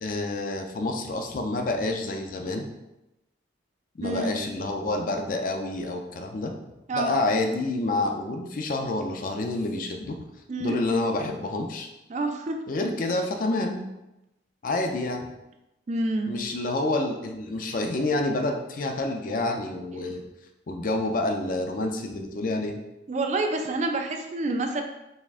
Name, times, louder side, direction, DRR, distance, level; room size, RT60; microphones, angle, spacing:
voice 1, 0.0-2.7 4.0-6.5 6.9-10.2 10.6-11.9 12.7-13.9 14.6-15.3 16.3-20.2 20.7-22.7, left 2 dB, 45° left, 4 dB, 0.4 m, -28 dB
voice 2, 4.0-4.3 6.9-7.2 10.5-10.8 12.1-12.6 15.9-16.3 23.1-24.8, right 2 dB, 40° right, 4 dB, 0.3 m, -27 dB
4.2 x 3.5 x 2.5 m, 0.94 s
head